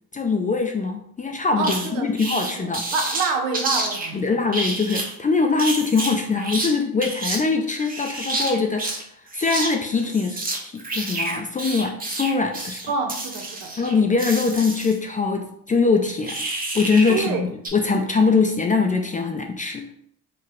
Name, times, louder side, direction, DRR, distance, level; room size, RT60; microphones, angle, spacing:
voice 1, 0.1-2.8 4.1-9.0 9.3-12.8 13.8-16.4 16.7-19.9, left 4 dB, 20° left, 4 dB, 0.3 m, -22 dB
sound 1, 1.6-1.9 2.2-4.1 4.5-5.1 5.6-6.7 7.0-7.4 7.7-9.0 9.3-9.7 10.0-15.0 16.2-17.3 17.6-17.7, right 2 dB, 20° right, 0.7 m, -29 dB
voice 2, 1.6-4.4 12.9-13.8 17.1-17.5 18.3-18.4, right 4 dB, 75° right, 4 dB, 0.7 m, -28 dB
2.8 x 2.2 x 3.7 m, 0.70 s
hypercardioid pair, 55°, 43 cm